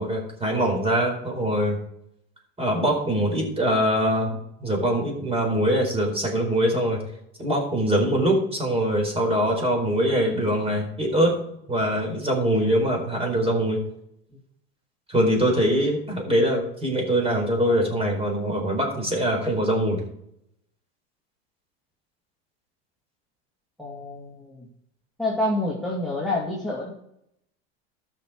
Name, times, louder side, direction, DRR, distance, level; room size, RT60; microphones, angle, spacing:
voice 1, 0.0-1.8 2.6-7.0 7.4-11.4 11.7-13.8 15.1-20.0, equal, 15° right, 1 dB, 4.3 m, -23 dB
voice 2, 23.8-24.7 25.2-26.9, left 1 dB, ahead, -6 dB, 2.4 m, -28 dB
13.5 x 6.4 x 4.9 m, 0.78 s
supercardioid pair, 105°, 33 cm